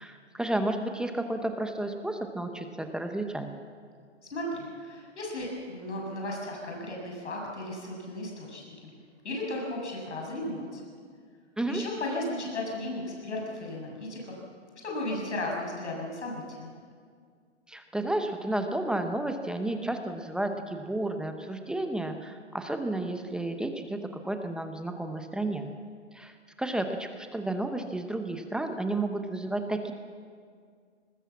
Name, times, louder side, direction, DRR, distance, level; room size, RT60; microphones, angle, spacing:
voice 1, 0.0-3.5 11.6-11.8 17.7-25.7 26.1-29.9, right 1 dB, ahead, 6 dB, 0.8 m, -32 dB
voice 2, 4.2-8.7 9.2-10.8 11.7-14.4 14.8-16.7, left 1 dB, 75° left, -1 dB, 7.4 m, -35 dB
22.5 x 19.5 x 7.3 m, 2.1 s
hypercardioid pair, 135°, 35 cm